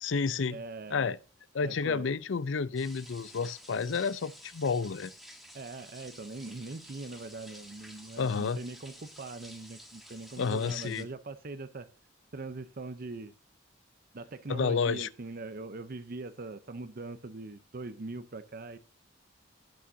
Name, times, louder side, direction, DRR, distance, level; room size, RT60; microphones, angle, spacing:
voice 1, 0.0-0.6 0.9-1.2 1.5-5.1 8.2-8.6 10.4-11.1 14.5-15.1, left 5 dB, 70° left, 0.5 m, -30 dB
voice 2, 0.5-1.1 1.6-2.1 5.5-11.9 12.3-13.3 14.1-18.8, right 3 dB, 50° right, 0.7 m, -42 dB
sound 1, 2.8-11.0, equal, ahead, 1.6 m, -51 dB
17.0 x 8.6 x 2.7 m
head